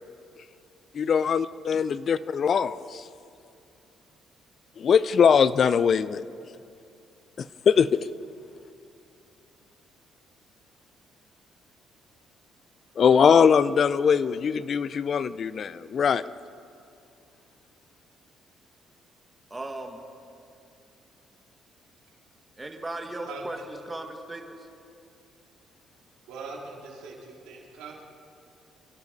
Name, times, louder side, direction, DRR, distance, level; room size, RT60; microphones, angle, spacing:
voice 1, 0.9-3.1 4.8-6.2 7.4-8.0 13.0-16.2, left 7 dB, 55° left, 16 dB, 0.5 m, -21 dB
voice 2, 19.5-20.0 22.6-24.5, right 2 dB, 20° right, 3 dB, 2.0 m, -36 dB
voice 3, 26.3-28.0, right 4 dB, 85° right, -3 dB, 3.1 m, -41 dB
27.5 x 11.5 x 4.1 m, 2.5 s
supercardioid pair, 70°, 0 cm